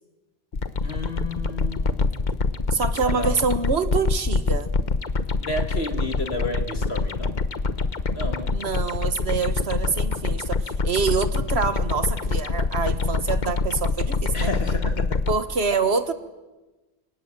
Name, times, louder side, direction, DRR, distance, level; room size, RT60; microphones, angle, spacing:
sound 1, 0.5-15.4, left 3 dB, 45° left, 1.2 m, -25 dB
voice 1, 0.8-2.1 3.0-3.4 5.4-7.5 8.1-8.5 14.3-15.2, left 1 dB, 75° left, 6 dB, 2.8 m, -31 dB
voice 2, 2.7-4.7 8.5-14.5 15.3-16.1, right 5 dB, 90° right, 11 dB, 1.8 m, -26 dB
28.5 x 25.5 x 7.6 m, 1.1 s
omnidirectional pair, 1.0 m